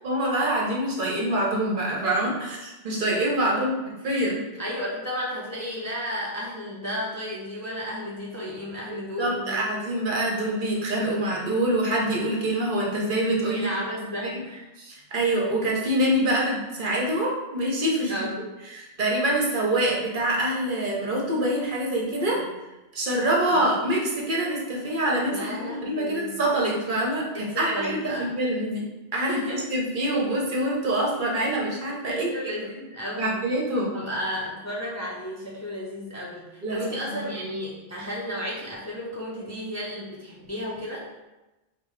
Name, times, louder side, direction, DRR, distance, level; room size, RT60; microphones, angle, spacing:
voice 1, 0.0-4.4 9.2-14.3 14.8-18.2 18.7-22.4 22.9-32.3 33.2-33.9 36.6-37.3, right 1 dB, 55° right, -3 dB, 0.9 m, -25 dB
voice 2, 4.6-9.7 13.5-14.7 18.1-18.3 22.3-22.5 23.5-23.6 25.3-26.4 27.3-28.3 29.1-29.7 32.1-33.4 33.9-41.0, left 1 dB, 20° left, -5 dB, 0.5 m, -33 dB
5.2 x 2.2 x 3.1 m, 1.0 s
omnidirectional pair, 1.0 m